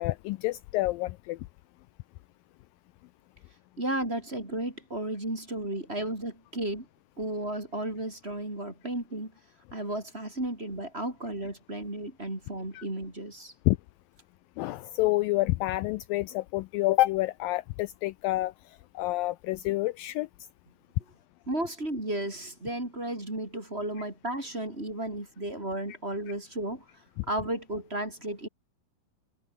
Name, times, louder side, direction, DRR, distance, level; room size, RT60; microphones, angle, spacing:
voice 1, 0.0-1.4 12.8-12.9 13.7-13.8 14.6-18.5 19.0-20.3, left 18 dB, 80° left, 2.2 m, -28 dB
voice 2, 3.8-6.9 7.2-9.3 9.7-13.5 21.5-26.8 27.3-28.5, right 1 dB, 15° right, 5.1 m, -33 dB
omnidirectional pair, 4.3 m